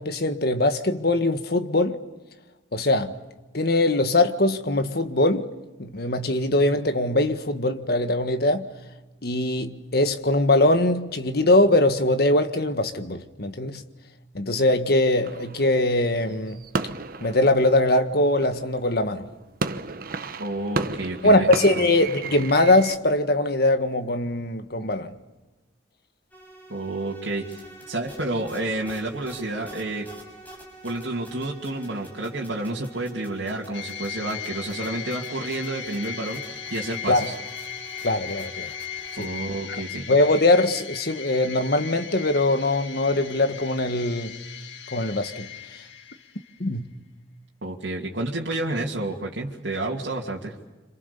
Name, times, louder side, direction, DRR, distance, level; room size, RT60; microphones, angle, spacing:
voice 1, 0.0-2.0 2.7-3.2 3.5-5.5 5.8-8.7 9.2-13.8 14.3-16.6 17.2-19.3 21.2-25.1 37.1-37.3 38.0-38.7 39.2-39.3 39.7-39.8 40.1-44.4 44.9-45.5 46.6-46.9, left 2 dB, 60° left, 1.7 m, -22 dB
sound 1, 15.2-18.8 19.3-23.0, right 3 dB, 55° right, 1.1 m, -33 dB
voice 2, 20.4-21.9 26.7-30.1 30.8-36.4 36.7-37.3 39.2-40.1 47.6-50.5, right 2 dB, 75° right, 2.7 m, -30 dB
sound 2, 26.3-39.4, right 2 dB, 10° left, 6.6 m, -46 dB
sound 3, 33.7-46.6, left 8 dB, 85° left, 2.1 m, -37 dB
27.5 x 27.0 x 6.9 m
head